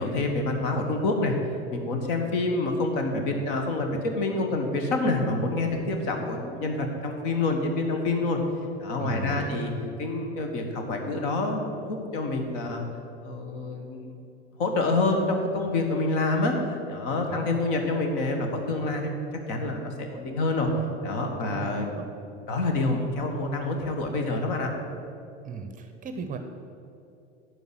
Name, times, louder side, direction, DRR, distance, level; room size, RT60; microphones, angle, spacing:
voice 1, 0.0-1.3 1.7-8.4 8.8-9.7 10.0-12.8 13.2-14.1 14.6-20.7 21.0-22.0 22.5-24.7, left 2 dB, 50° left, 4 dB, 1.5 m, -27 dB
voice 2, 9.0-9.7 17.3-17.6 21.4-22.1 25.4-26.4, right 5 dB, 25° right, 7 dB, 0.7 m, -37 dB
10.5 x 4.9 x 7.9 m, 2.6 s
figure-of-eight pair, 80°, 33 cm